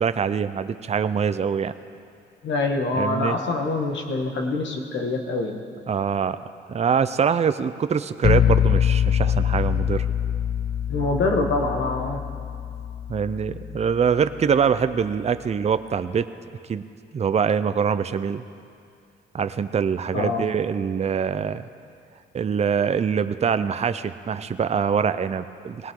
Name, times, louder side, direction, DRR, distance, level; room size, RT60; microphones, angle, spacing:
voice 1, 0.0-1.7 3.0-3.4 5.9-6.4 6.7-10.1 13.1-16.3 16.7-16.8 17.1-18.4 19.3-21.6 22.3-25.9, right 7 dB, 35° right, 12 dB, 0.6 m, -24 dB
voice 2, 2.4-5.6 10.9-12.2 20.1-20.4, left 3 dB, 70° left, 3 dB, 1.9 m, -25 dB
sound 1, 8.2-14.0, left 9 dB, 50° left, 0.6 m, -24 dB
20.0 x 18.0 x 3.8 m, 2.4 s
cardioid pair, 90°, 20 cm